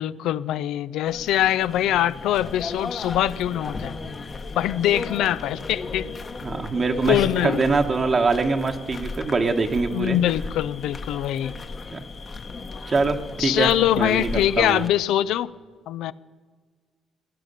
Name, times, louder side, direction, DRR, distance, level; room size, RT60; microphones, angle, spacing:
voice 1, 0.0-3.9 4.6-6.1 7.1-7.7 9.9-11.5 13.4-15.5 15.9-16.1, left 12 dB, 90° left, 0.4 m, -23 dB
sound 1, 1.1-14.9, left 3 dB, 40° left, 1.1 m, -35 dB
voice 2, 6.4-10.2 11.9-12.0 12.9-13.7 14.0-14.8, right 4 dB, 40° right, 1.1 m, -23 dB
18.0 x 10.0 x 6.6 m
cardioid pair, 90°, 0 cm